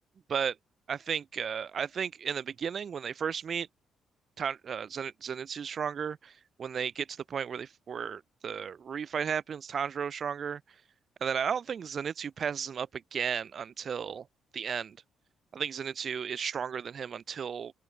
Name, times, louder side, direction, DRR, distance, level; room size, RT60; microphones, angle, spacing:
voice 1, 0.9-3.7 4.4-6.3 6.6-10.6 11.2-14.3 14.5-15.0 15.5-17.7, right 7 dB, 50° right, 4.7 m, -34 dB
open air
cardioid pair, 90°, 0 cm